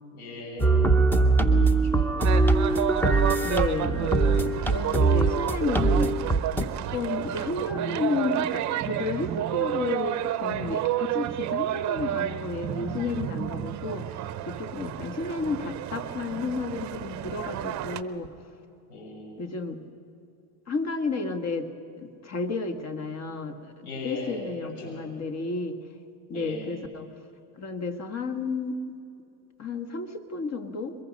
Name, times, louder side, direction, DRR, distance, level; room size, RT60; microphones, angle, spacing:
voice 1, 0.1-2.2 3.4-3.7 18.9-19.3 23.8-25.0 26.3-26.7, left 2 dB, 75° left, -2 dB, 6.7 m, -38 dB
sound 1, 0.6-6.6, right 3 dB, 5° left, 0.8 m, -22 dB
sound 2, 2.2-18.0, right 12 dB, 40° right, 0.8 m, -31 dB
voice 2, 3.4-4.1 4.4-6.1 6.6-18.3 19.4-19.8 20.7-21.7 22.0-25.8 26.3-27.1 27.6-28.8 29.6-31.0, left 3 dB, 35° left, 7 dB, 1.7 m, -32 dB
23.0 x 21.5 x 5.4 m, 2.7 s
supercardioid pair, 130°, 46 cm